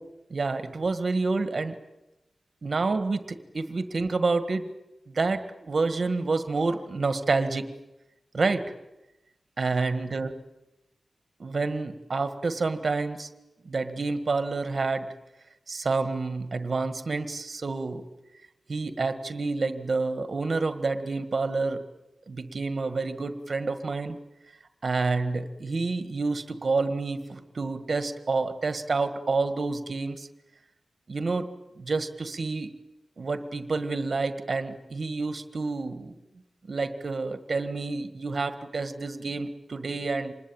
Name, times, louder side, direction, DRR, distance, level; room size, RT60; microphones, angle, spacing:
voice 1, 0.3-1.8 2.6-4.7 5.1-7.7 8.3-8.7 9.6-10.3 11.4-13.3 13.6-15.1 15.7-18.0 18.7-21.8 22.3-24.2 24.8-30.3 31.1-31.5 31.8-32.7 33.2-36.1 36.7-40.3, right 3 dB, 45° right, 10 dB, 1.8 m, -28 dB
26.0 x 20.5 x 8.9 m, 0.94 s
wide cardioid pair, 145°, 0 cm